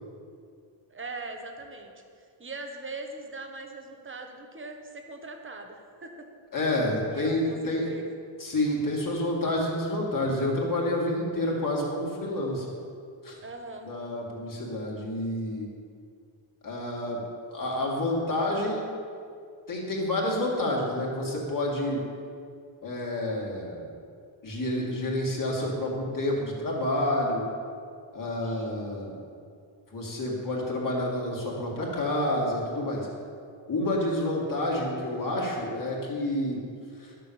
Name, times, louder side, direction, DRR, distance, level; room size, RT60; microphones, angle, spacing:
voice 1, 0.9-6.3 7.1-8.1 13.4-13.9 28.4-28.7, right 3 dB, 25° right, 4 dB, 1.2 m, -41 dB
voice 2, 6.5-7.9 8.4-12.7 13.2-13.4 13.8-15.7 16.6-17.2 17.5-18.9 19.7-22.0 22.8-23.9 24.4-27.4 28.1-29.2 29.9-33.1 33.7-36.6 37.0-37.1, left 1 dB, 40° left, -3 dB, 2.5 m, -29 dB
12.0 x 6.8 x 7.2 m, 2.3 s
wide cardioid pair, 155°, 48 cm